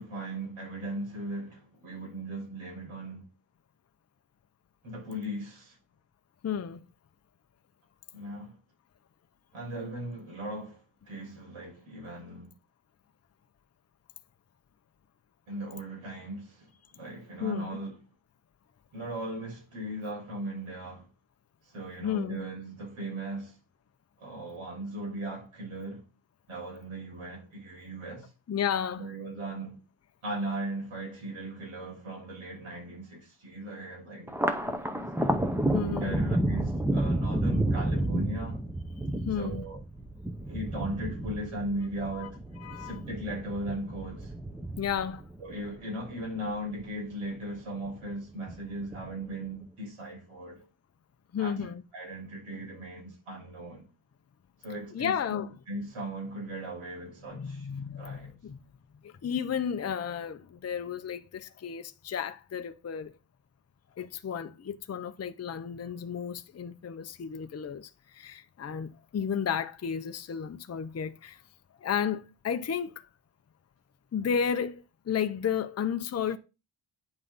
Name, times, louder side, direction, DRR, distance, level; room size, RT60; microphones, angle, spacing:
voice 1, 0.0-3.3 4.8-5.8 8.1-8.6 9.5-12.5 15.5-17.9 18.9-21.1 21.6-23.6 24.2-26.1 26.5-28.3 29.0-29.8 30.2-35.1 35.8-38.6 39.4-39.8 40.5-42.4 42.8-44.3 45.4-50.6 51.4-53.8 54.6-57.7 58.0-58.3, right 1 dB, 80° right, 6.1 m, -38 dB
voice 2, 6.4-6.8 17.4-17.8 22.0-22.4 28.5-29.1 35.7-36.2 39.0-39.6 42.1-42.3 42.6-43.0 44.8-45.2 51.3-51.8 54.9-55.5 57.3-58.6 59.0-63.1 64.0-71.4 71.8-73.1 74.1-76.4, left 7 dB, 30° left, 0.6 m, -33 dB
Thunder, 34.3-46.9 47.3-48.1 48.5-49.3, right 1 dB, 5° right, 0.9 m, -31 dB
9.8 x 5.6 x 4.0 m
wide cardioid pair, 145°, 49 cm